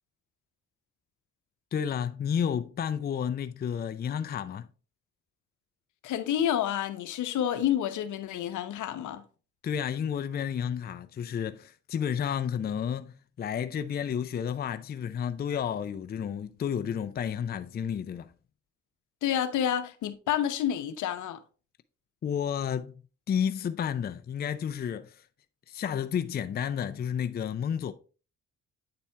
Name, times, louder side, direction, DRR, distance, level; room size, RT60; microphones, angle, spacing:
voice 1, 1.7-4.7 9.6-18.3 22.2-22.9 23.3-25.2 25.7-27.9, left 8 dB, 35° left, 0.4 m, -31 dB
voice 2, 6.0-9.2 19.2-21.4, left 10 dB, 75° left, 0.8 m, -29 dB
8.6 x 4.2 x 3.3 m
cardioid pair, 90°, 30 cm